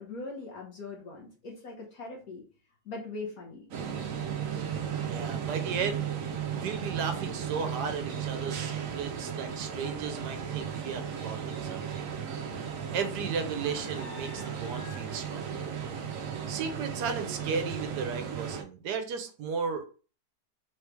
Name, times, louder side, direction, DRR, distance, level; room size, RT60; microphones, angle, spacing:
voice 1, 0.0-2.4 2.8-3.7, left 3 dB, 65° left, -2 dB, 1.4 m, -41 dB
sound 1, 3.7-18.6, right 8 dB, 60° right, 1.0 m, -35 dB
voice 2, 5.1-6.1 6.5-12.1 12.9-15.7 16.5-19.8, right 5 dB, 80° right, 7 dB, 1.3 m, -35 dB
sound 2, 8.2-16.9, left 2 dB, 45° left, 1.7 m, -54 dB
3.9 x 3.2 x 3.3 m, 0.37 s
omnidirectional pair, 1.8 m